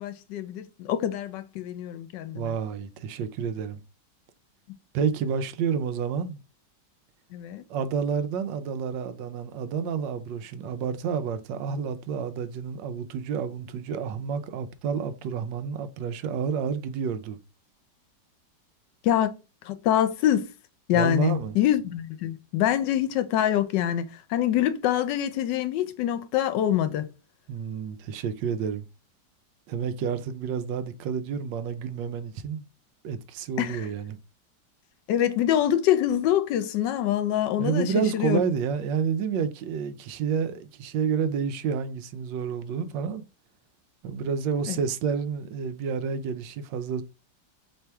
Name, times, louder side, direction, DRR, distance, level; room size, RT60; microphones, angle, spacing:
voice 1, 0.0-2.5 7.3-7.6 19.0-19.3 19.6-20.5 20.9-24.0 24.3-27.1 33.6-33.9 35.1-38.4 44.7-44.8, left 11 dB, 80° left, 1.2 m, -25 dB
voice 2, 2.3-3.8 4.9-6.4 7.7-17.4 20.9-21.6 27.5-28.8 29.7-32.7 33.0-34.2 37.6-43.2 44.0-47.0, right 6 dB, 85° right, 1.3 m, -29 dB
4.3 x 3.3 x 3.4 m
omnidirectional pair, 1.9 m